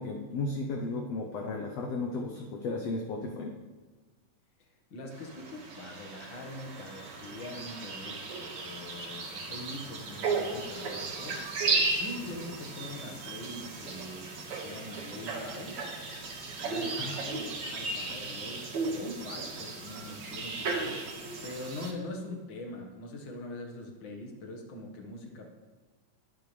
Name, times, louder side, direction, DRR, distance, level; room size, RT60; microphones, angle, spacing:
voice 1, 0.0-3.5 17.0-17.2, left 3 dB, 70° left, 1 dB, 1.6 m, -34 dB
voice 2, 4.9-11.4 11.9-15.8 16.6-21.0 21.4-25.5, left 1 dB, 45° left, 1 dB, 1.8 m, -43 dB
sound 1, 5.1-21.9, right 3 dB, 55° right, 3.0 m, -35 dB
21.0 x 9.9 x 3.4 m, 1.3 s
omnidirectional pair, 3.9 m